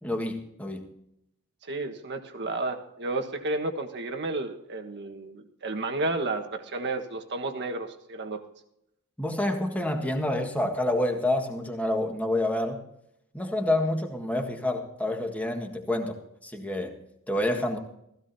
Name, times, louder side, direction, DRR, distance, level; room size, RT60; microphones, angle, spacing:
voice 1, 0.0-0.9 9.2-12.8 13.3-17.0 17.3-17.8, left 1 dB, 5° left, 3 dB, 1.6 m, -28 dB
voice 2, 1.6-8.4, right 2 dB, 50° right, 5 dB, 1.4 m, -32 dB
16.0 x 15.0 x 2.8 m, 0.78 s
head